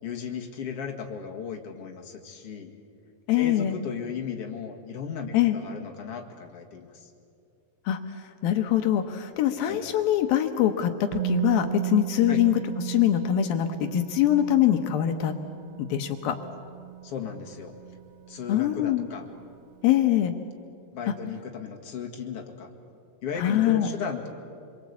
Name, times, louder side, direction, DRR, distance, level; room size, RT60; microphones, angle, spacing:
voice 1, 0.0-2.7 3.3-7.1 9.7-9.8 12.3-12.4 17.0-17.7 18.3-19.3 20.9-22.7 23.2-24.3, left 6 dB, 45° left, 2 dB, 2.5 m, -36 dB
voice 2, 3.3-3.8 5.3-5.6 7.9-8.0 8.4-12.6 12.8-15.3 15.8-16.4 18.5-19.1 19.8-20.3 23.4-23.9, left 12 dB, 70° left, 6 dB, 2.7 m, -23 dB
Musical instrument, 11.1-19.0 19.3-19.5, right 15 dB, 80° right, 2.6 m, -35 dB
27.5 x 22.5 x 8.4 m, 2.5 s
omnidirectional pair, 4.6 m